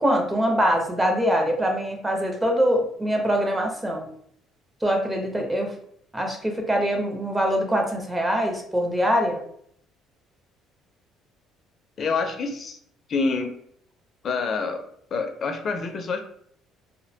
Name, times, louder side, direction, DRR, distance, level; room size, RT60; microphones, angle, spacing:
voice 1, 0.0-4.1 4.8-5.7 6.1-9.4, equal, 15° right, 2 dB, 0.5 m, -23 dB
voice 2, 12.0-12.8 13.1-13.5 14.2-14.8 15.1-16.2, left 4 dB, 45° left, 5 dB, 0.4 m, -26 dB
2.5 x 2.1 x 2.6 m, 0.67 s
cardioid pair, 110°, 0 cm